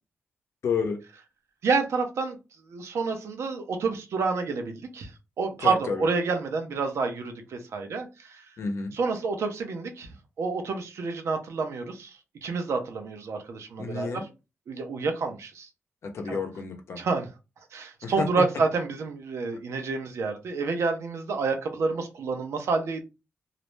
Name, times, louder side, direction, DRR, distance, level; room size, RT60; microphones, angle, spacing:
voice 1, 0.6-1.0 5.6-6.1 8.6-8.9 13.8-14.3 16.0-17.0 18.0-18.3, left 5 dB, 70° left, 4 dB, 0.6 m, -30 dB
voice 2, 1.6-2.4 2.7-5.1 5.4-8.4 8.9-12.1 12.4-14.1 14.7-15.7 16.3-16.4 17.0-17.3 17.7-23.0, right 4 dB, 80° right, 5 dB, 0.6 m, -28 dB
2.5 x 2.1 x 3.1 m, 0.27 s
cardioid pair, 85°, 5 cm